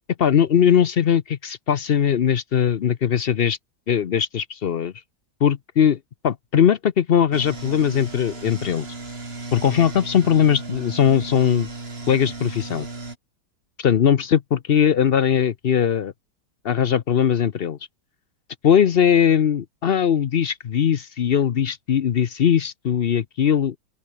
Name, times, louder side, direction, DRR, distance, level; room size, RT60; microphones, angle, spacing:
voice 1, 0.2-3.6 3.9-4.9 5.4-6.0 6.2-8.9 9.5-11.7 12.1-12.9 13.8-16.1 16.6-17.8 18.6-23.7, left 8 dB, 60° left, 0.6 m, -20 dB
sound 1, 7.3-13.2, right 3 dB, 35° right, 3.0 m, -35 dB
open air
omnidirectional pair, 1.8 m